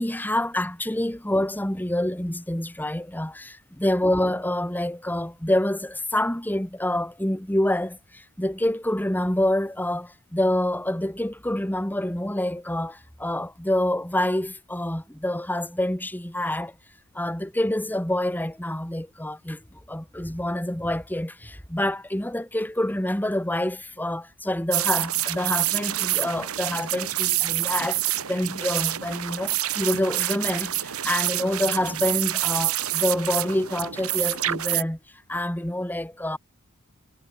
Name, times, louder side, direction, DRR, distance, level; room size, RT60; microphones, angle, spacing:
voice 1, 0.0-16.7 17.1-28.0 28.3-35.0 35.3-36.4, left 1 dB, 10° left, 1.7 m, -27 dB
sound 1, 24.7-34.8, right 14 dB, 90° right, 1.5 m, -27 dB
head